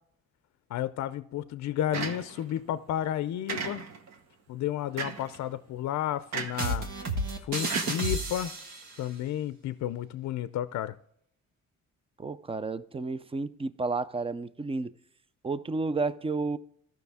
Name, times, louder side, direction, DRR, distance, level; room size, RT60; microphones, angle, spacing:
voice 1, 0.7-3.9 4.5-6.9 7.4-8.5 9.0-10.9, left 11 dB, 65° left, 0.5 m, -32 dB
sound 1, 1.9-2.6 3.5-4.2 5.0-5.4 6.3-6.7 7.7-8.6, right 5 dB, 60° right, 1.3 m, -35 dB
sound 2, 6.6-8.9, right 2 dB, 80° right, 1.5 m, -31 dB
voice 2, 12.2-14.9 15.4-16.6, right 3 dB, 20° right, 0.5 m, -31 dB
14.0 x 5.9 x 3.5 m
cardioid pair, 90°, 30 cm